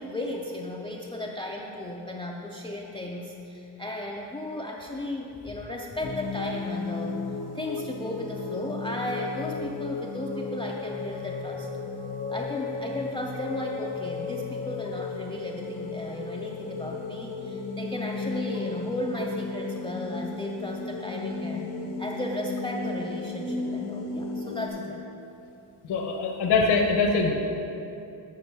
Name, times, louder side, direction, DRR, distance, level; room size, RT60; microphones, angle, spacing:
voice 1, 0.0-7.2 7.5-11.7 12.3-21.7 22.0-25.0, left 1 dB, 10° left, -1 dB, 0.3 m, -35 dB
sound 1, 6.0-24.7, left 4 dB, 80° left, 1.1 m, -34 dB
voice 2, 25.9-27.3, left 4 dB, 60° left, 0 dB, 0.9 m, -23 dB
7.5 x 6.0 x 4.6 m, 2.8 s
cardioid pair, 125°, 44 cm